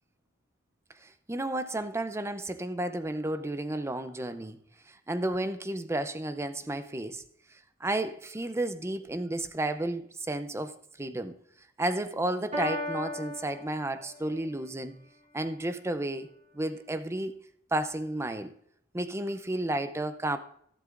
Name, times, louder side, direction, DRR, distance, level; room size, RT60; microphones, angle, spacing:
voice 1, 1.0-4.6 4.9-7.2 7.8-11.3 11.8-15.0 15.3-16.3 16.5-17.3 17.7-18.5 18.9-20.4, right 1 dB, 15° right, 0.6 m, -32 dB
Piano, 12.5-14.5, left 1 dB, 35° right, 3.3 m, -36 dB
13.5 x 11.0 x 2.5 m
head